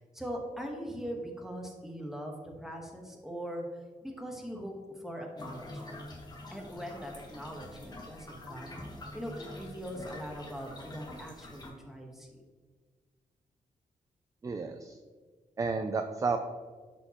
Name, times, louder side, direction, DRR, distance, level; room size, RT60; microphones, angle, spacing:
voice 1, 0.0-6.0 6.5-8.8 9.1-12.4, equal, 5° right, 1 dB, 1.1 m, -41 dB
sound 1, 5.4-11.7, left 1 dB, 30° left, 1.2 m, -46 dB
voice 2, 14.4-15.0 15.6-16.4, right 4 dB, 25° right, 7 dB, 0.3 m, -31 dB
11.0 x 4.4 x 2.9 m, 1.5 s
wide cardioid pair, 135°, 14 cm